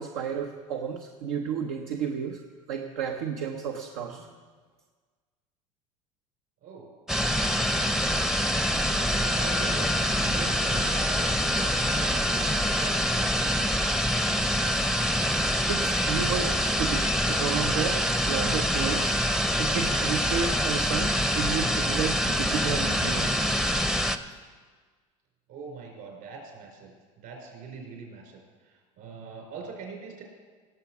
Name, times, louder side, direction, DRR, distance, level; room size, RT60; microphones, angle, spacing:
voice 1, 0.0-2.4 2.7-4.3 15.7-19.1 19.6-23.3, right 7 dB, 85° right, 3 dB, 0.9 m, -32 dB
sound 1, 7.1-24.2, equal, 5° right, 0.6 m, -25 dB
voice 2, 7.2-13.0 25.5-30.2, right 5 dB, 60° right, 1 dB, 4.6 m, -43 dB
17.5 x 7.1 x 6.0 m, 1.5 s
supercardioid pair, 100°, 17 cm